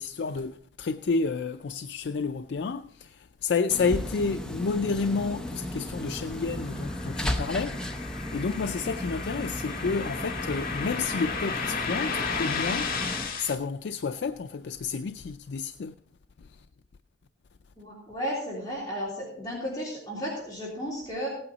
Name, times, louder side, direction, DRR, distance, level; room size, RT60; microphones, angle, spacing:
voice 1, 0.0-7.9 8.3-13.0 13.4-15.9, left 4 dB, 70° left, 0.4 m, -30 dB
sound 1, 3.7-13.3, left 1 dB, 5° left, 0.8 m, -35 dB
sound 2, 5.7-13.5, left 5 dB, 50° left, 1.7 m, -34 dB
voice 2, 17.8-21.3, equal, 20° left, 3.3 m, -34 dB
16.5 x 8.8 x 4.0 m
head